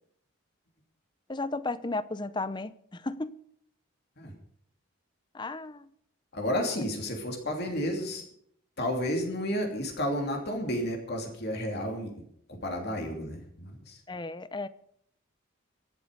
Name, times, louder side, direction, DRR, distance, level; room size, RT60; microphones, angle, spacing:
voice 1, 1.3-3.3 5.3-5.9 14.1-14.7, left 2 dB, 20° left, 0.6 m, -34 dB
voice 2, 6.3-8.2 8.8-12.1 12.5-14.0, equal, 50° left, 3.0 m, -32 dB
24.5 x 8.3 x 5.2 m
head